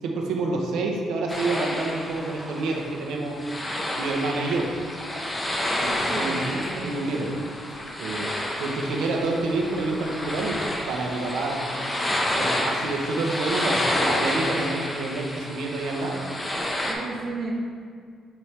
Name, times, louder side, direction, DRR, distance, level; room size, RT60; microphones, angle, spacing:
voice 1, 0.0-3.4 4.0-4.7 5.8-7.3 8.0-8.3 8.6-10.6 10.9-11.7 12.4-16.2, right 3 dB, 85° right, 0 dB, 0.8 m, -28 dB
sound 1, 1.3-16.9, left 1 dB, 15° left, 0.8 m, -29 dB
voice 2, 6.1-7.0 16.8-17.5, right 3 dB, 55° right, 0 dB, 1.1 m, -33 dB
6.8 x 4.5 x 3.3 m, 2.1 s
cardioid pair, 110°, 0 cm